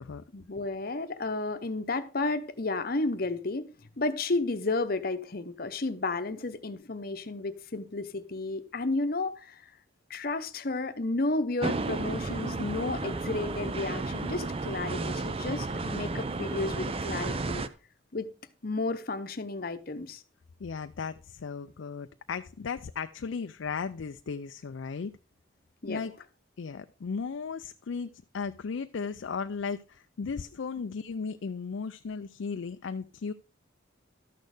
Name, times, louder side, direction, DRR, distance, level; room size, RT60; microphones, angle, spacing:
voice 1, 0.3-3.7 4.0-9.7 10.1-17.7 18.1-18.3 18.6-20.2 25.8-26.0, left 2 dB, 45° left, 0.9 m, -32 dB
sound 1, 11.6-17.7, right 3 dB, 30° right, 0.5 m, -33 dB
voice 2, 20.6-25.1 25.9-26.1 26.6-33.3, left 5 dB, 70° left, 0.4 m, -36 dB
12.5 x 6.4 x 4.8 m
head